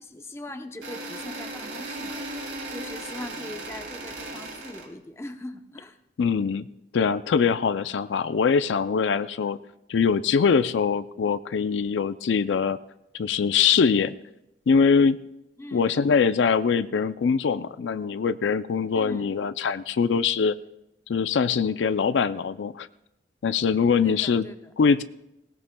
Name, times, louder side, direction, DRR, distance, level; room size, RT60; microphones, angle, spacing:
voice 1, 0.0-2.2 2.7-6.0 15.6-15.9 18.9-19.3 24.0-24.7, left 1 dB, 15° left, 6 dB, 0.7 m, -40 dB
sound 1, 0.8-4.9, right 2 dB, 85° right, 2.7 m, -36 dB
voice 2, 6.2-6.7 6.9-9.6 9.9-12.8 13.1-14.1 14.7-15.2 15.7-20.5 21.1-22.9 23.4-24.5 24.8-25.0, left 6 dB, 80° left, 13 dB, 0.4 m, -23 dB
19.5 x 17.5 x 2.2 m, 0.89 s
head